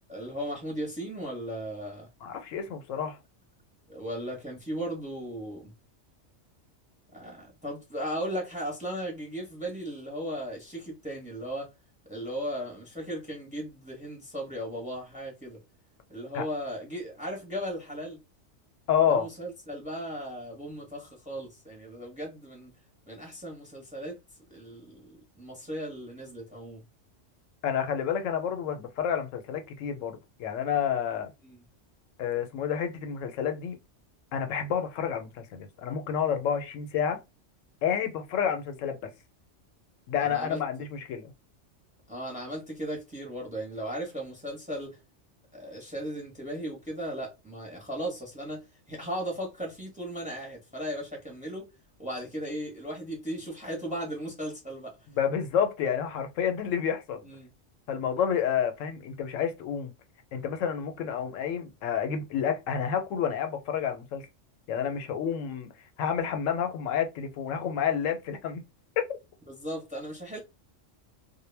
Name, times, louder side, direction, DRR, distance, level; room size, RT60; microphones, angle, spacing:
voice 1, 0.1-2.1 3.9-5.7 7.1-11.7 12.1-15.6 16.1-18.2 19.1-22.7 23.1-24.2 24.5-26.8 31.4-31.6 40.2-40.6 42.1-45.0 45.5-51.7 52.0-54.9 57.2-57.5 69.5-70.4, equal, 10° right, 0.7 m, -36 dB
voice 2, 2.2-3.2 16.3-16.4 18.9-19.3 27.6-31.3 32.2-33.8 34.3-37.2 37.8-39.0 40.1-41.3 55.1-57.2 57.9-59.9 60.3-64.3 64.7-65.7 66.0-68.6, left 8 dB, 90° left, 1.0 m, -29 dB
2.2 x 2.1 x 3.2 m
omnidirectional pair, 1.3 m